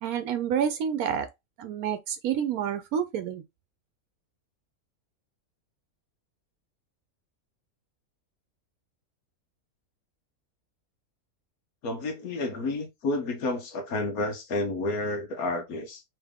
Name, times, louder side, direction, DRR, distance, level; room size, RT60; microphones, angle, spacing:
voice 1, 0.0-1.3 1.6-3.4, right 8 dB, 80° right, 1.0 m, -28 dB
voice 2, 11.8-16.0, left 2 dB, 80° left, 1.4 m, -30 dB
3.5 x 3.4 x 3.5 m
omnidirectional pair, 1.5 m